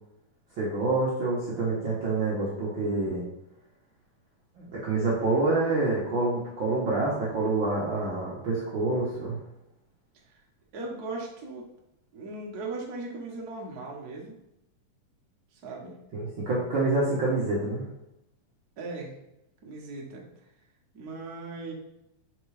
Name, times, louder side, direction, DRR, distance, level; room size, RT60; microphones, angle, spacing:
voice 1, 0.6-3.2 4.6-9.4 16.1-17.8, right 2 dB, 65° right, -6 dB, 1.2 m, -27 dB
voice 2, 10.7-11.6 12.1-14.3 15.5-15.9 18.8-19.1 19.6-20.2 20.9-21.7, right 3 dB, 90° right, -2 dB, 0.8 m, -38 dB
5.7 x 4.5 x 4.8 m, 0.86 s
omnidirectional pair, 4.0 m